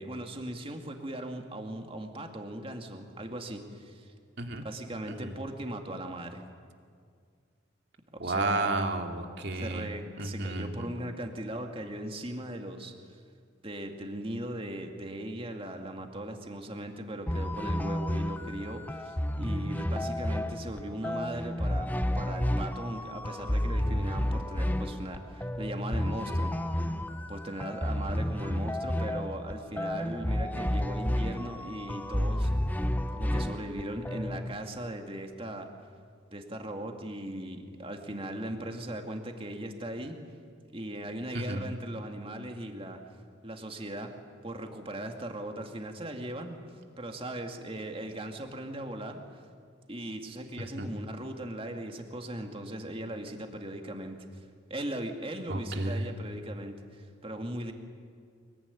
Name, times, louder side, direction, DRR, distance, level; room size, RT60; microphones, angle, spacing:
voice 1, 0.0-4.1 4.5-6.5 8.2-8.9 9.5-12.9 13.6-26.8 27.3-32.5 33.1-35.7 36.3-40.2 40.7-43.0 43.4-44.1 44.4-46.6 47.0-49.2 49.9-54.4 54.7-57.7, right 1 dB, 30° right, 4 dB, 2.2 m, -39 dB
voice 2, 8.2-9.9 10.2-10.9 41.3-41.6 50.8-50.9 55.5-56.2, right 2 dB, 55° right, 4 dB, 2.4 m, -32 dB
sound 1, 17.3-34.5, left 1 dB, 10° left, 0.8 m, -31 dB
25.0 x 22.5 x 9.9 m, 2.1 s
head